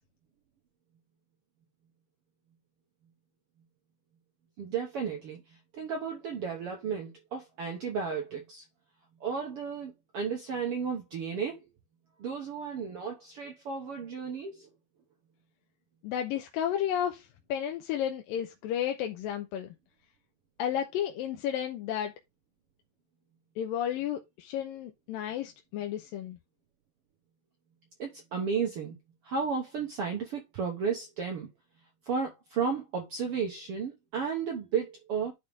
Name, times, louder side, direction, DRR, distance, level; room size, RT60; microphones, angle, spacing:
voice 1, 4.6-8.6 9.2-11.7 12.2-14.7 28.0-29.0 29.2-31.5 32.0-35.3, right 6 dB, 65° right, 1.4 m, -33 dB
voice 2, 16.0-19.7 20.6-22.1 23.6-26.4, left 10 dB, 90° left, 2.5 m, -32 dB
10.0 x 4.4 x 3.5 m
omnidirectional pair, 4.0 m